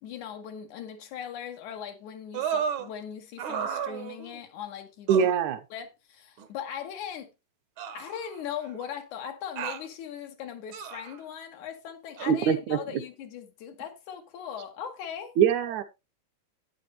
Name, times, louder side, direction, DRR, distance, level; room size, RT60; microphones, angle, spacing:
voice 1, 0.0-5.3 5.7-7.3 7.9-15.3, left 8 dB, 80° left, 2.8 m, -39 dB
sound 1, 2.3-2.9 3.4-4.4 5.1-5.3 6.4-6.5 7.8-8.7 9.6-9.9 10.7-11.2 12.2-12.3, right 7 dB, 60° right, 1.4 m, -33 dB
voice 2, 5.1-5.6 12.3-12.8 15.4-15.8, right 8 dB, 80° right, 2.3 m, -23 dB
11.0 x 9.2 x 3.1 m
omnidirectional pair, 3.4 m